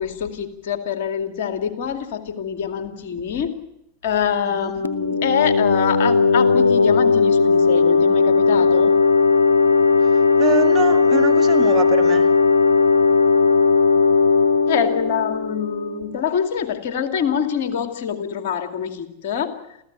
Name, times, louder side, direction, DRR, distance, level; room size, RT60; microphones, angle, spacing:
voice 1, 0.0-3.6 4.0-8.9 14.7-19.5, left 7 dB, 50° left, 2.4 m, -25 dB
sound 1, 4.8-16.3, left 4 dB, 75° left, 1.2 m, -17 dB
voice 2, 10.4-12.3, right 8 dB, 25° right, 2.0 m, -25 dB
28.5 x 15.0 x 9.0 m
figure-of-eight pair, 90°, 0 cm